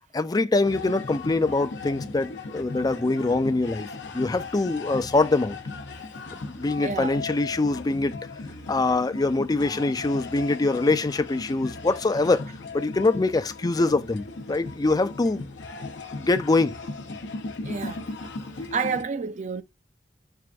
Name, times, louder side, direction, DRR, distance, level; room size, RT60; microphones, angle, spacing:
voice 1, 0.1-5.6 6.5-8.1 8.7-12.4 12.7-15.5 16.2-16.7, left 3 dB, 20° left, 0.4 m, -24 dB
sound 1, 0.6-19.0, left 3 dB, 70° left, 0.8 m, -37 dB
voice 2, 6.8-7.2 17.6-18.0 18.7-19.6, right 5 dB, 40° right, 0.4 m, -29 dB
4.6 x 2.5 x 3.3 m
head